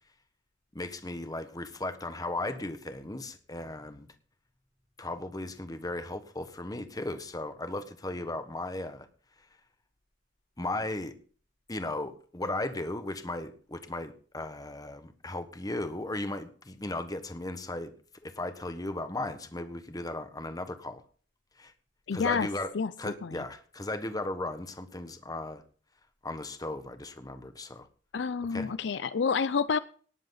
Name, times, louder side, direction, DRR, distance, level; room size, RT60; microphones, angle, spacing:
voice 1, 0.7-4.1 5.0-9.1 10.6-11.1 11.7-17.9 18.2-21.0 21.6-21.7 22.1-25.6 26.2-27.9 28.5-28.7, left 2 dB, 20° left, 9 dB, 1.3 m, -36 dB
voice 2, 22.1-22.5 22.7-22.9 23.2-23.4 28.1-29.8, left 5 dB, 65° left, 14 dB, 0.5 m, -28 dB
18.5 x 7.8 x 4.0 m, 0.42 s
head